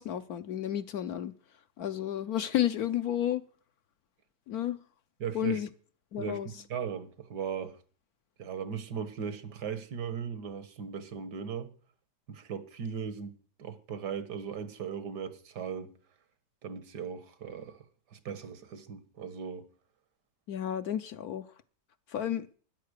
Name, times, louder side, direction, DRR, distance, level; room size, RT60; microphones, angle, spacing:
voice 1, 0.0-1.3 1.8-3.4 4.5-4.8 5.3-5.7 6.1-6.5 20.5-21.5 22.1-22.5, left 11 dB, 65° left, 1.2 m, -31 dB
voice 2, 5.2-5.6 6.2-7.8 8.4-11.7 12.3-15.9 16.6-17.8 18.1-19.7, right 7 dB, 80° right, 1.9 m, -38 dB
13.0 x 10.5 x 6.6 m
omnidirectional pair, 1.8 m